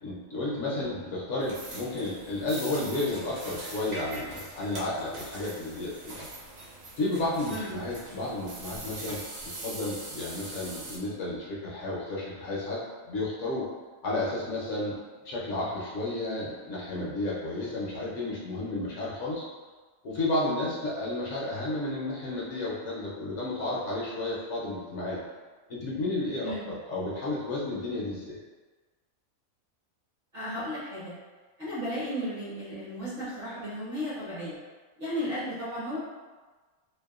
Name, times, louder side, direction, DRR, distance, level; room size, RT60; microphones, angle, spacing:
voice 1, 0.0-6.2 7.0-12.8 13.1-13.6 14.0-14.9 15.2-19.4 20.0-25.2 25.7-28.4, left 2 dB, 65° left, -6 dB, 0.9 m, -32 dB
sound 1, 1.4-11.0, right 2 dB, 80° right, 1.1 m, -42 dB
voice 2, 30.3-31.1 31.6-34.6 35.0-36.0, equal, 45° right, -10 dB, 1.0 m, -34 dB
2.7 x 2.1 x 2.3 m, 1.4 s
omnidirectional pair, 1.5 m